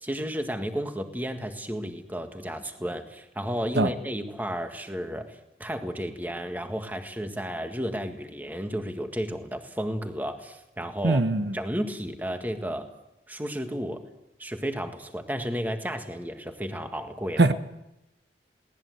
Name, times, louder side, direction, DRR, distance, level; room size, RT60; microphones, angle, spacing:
voice 1, 0.0-11.2 11.5-12.9 13.3-14.0 14.4-17.5, equal, 10° right, 6 dB, 1.7 m, -32 dB
voice 2, 11.0-11.4 17.4-17.5, right 2 dB, 70° right, 10 dB, 1.0 m, -20 dB
22.5 x 18.5 x 8.0 m, 0.91 s
head